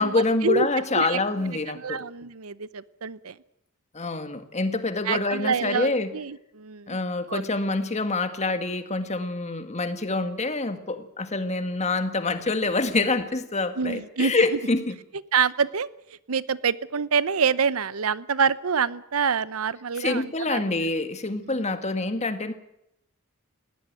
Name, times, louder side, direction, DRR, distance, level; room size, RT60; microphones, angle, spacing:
voice 1, 0.0-2.0 3.9-6.1 6.9-15.0 20.0-22.5, left 3 dB, 30° left, 9 dB, 1.7 m, -26 dB
voice 2, 1.7-3.3 5.1-7.0 7.3-7.4 13.8-14.3 15.3-15.9 16.3-20.9 21.4-21.6, right 6 dB, 75° right, 18 dB, 0.8 m, -26 dB
20.0 x 17.5 x 9.2 m, 0.81 s
head